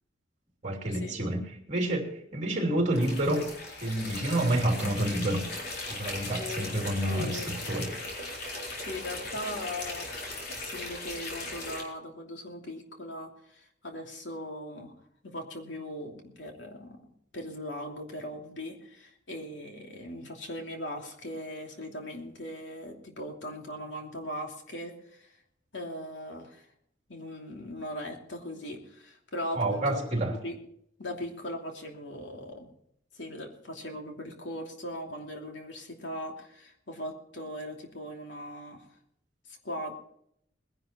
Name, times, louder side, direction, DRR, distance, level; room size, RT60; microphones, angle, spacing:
voice 1, 0.6-1.4 1.7-3.5 3.8-5.5 5.9-7.9 29.5-30.4, right 1 dB, 35° right, 2 dB, 3.2 m, -28 dB
sound 1, 2.9-11.8, left 2 dB, 55° left, 4.2 m, -38 dB
voice 2, 6.3-6.8 7.1-7.5 8.8-10.1 10.6-14.9 15.2-25.4 25.7-26.7 27.1-30.6 31.0-32.7 33.1-38.9 39.5-40.0, left 1 dB, 75° left, 2 dB, 2.9 m, -39 dB
21.0 x 11.0 x 4.4 m, 0.71 s
head